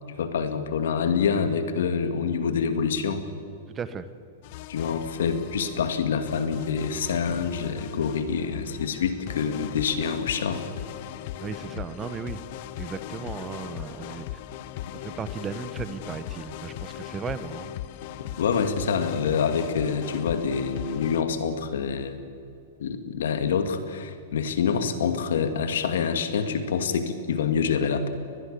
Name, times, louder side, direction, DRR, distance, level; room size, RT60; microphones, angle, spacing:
voice 1, 0.2-3.2 4.7-10.6 18.2-22.2 22.8-28.1, left 6 dB, 80° left, 8 dB, 2.2 m, -26 dB
voice 2, 3.7-4.1 11.4-12.4 12.8-14.4 14.9-17.7, right 7 dB, 20° right, 13 dB, 1.0 m, -36 dB
sound 1, 4.4-21.2, left 12 dB, 50° left, 0.9 m, -39 dB
22.0 x 20.5 x 6.8 m, 2.6 s
hypercardioid pair, 140°, 0 cm